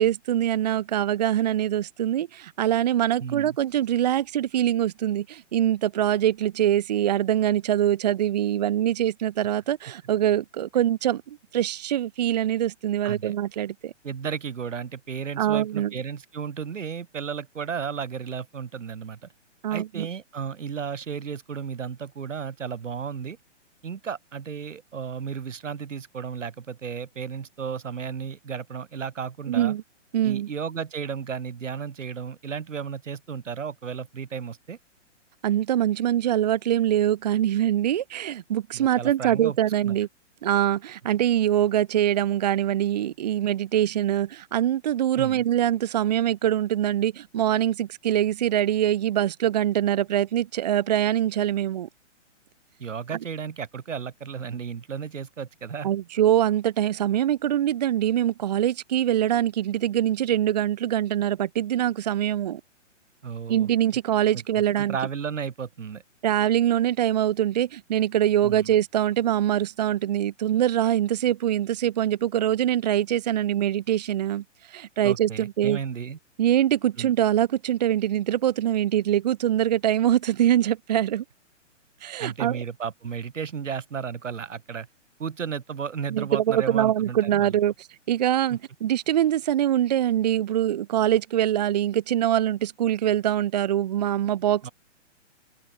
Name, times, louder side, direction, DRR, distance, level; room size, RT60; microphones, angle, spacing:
voice 1, 0.0-13.9 15.4-15.9 19.6-20.1 29.5-29.8 30.1-30.5 35.4-40.1 40.4-51.9 55.8-62.6 63.5-65.0 66.2-75.8 76.4-81.2 82.0-82.6 86.1-94.7, right 11 dB, 35° right, 1.3 m, -24 dB
voice 2, 3.2-3.6 13.0-13.3 14.0-19.3 19.7-23.4 23.8-29.8 30.2-34.8 38.7-39.6 39.9-40.0 45.2-45.4 52.8-55.9 63.2-63.7 64.8-66.0 68.4-68.8 75.0-76.2 77.0-77.1 82.2-84.9 85.2-87.5 88.5-88.6 94.6-94.7, right 7 dB, 80° right, 3.6 m, -33 dB
hypercardioid pair, 170°, 37 cm